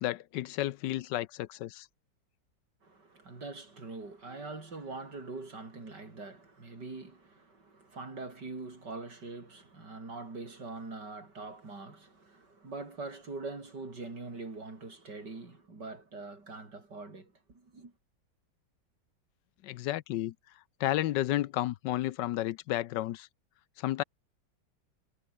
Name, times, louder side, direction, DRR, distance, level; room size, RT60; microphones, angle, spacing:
voice 1, 0.0-1.9 19.6-20.3 20.8-23.3 23.8-24.0, left 14 dB, 80° left, 1.3 m, -32 dB
voice 2, 2.8-17.9, right 3 dB, 65° right, 5.3 m, -43 dB
omnidirectional pair, 2.0 m